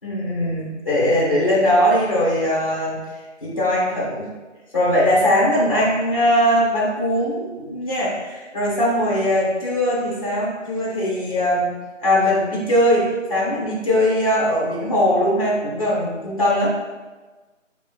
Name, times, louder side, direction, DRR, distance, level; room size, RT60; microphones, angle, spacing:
voice 1, 0.0-3.0 3.4-4.3 4.7-11.7 12.0-16.7, equal, 30° left, -6 dB, 0.9 m, -20 dB
4.8 x 3.6 x 2.3 m, 1.2 s
figure-of-eight pair, 165°, 38 cm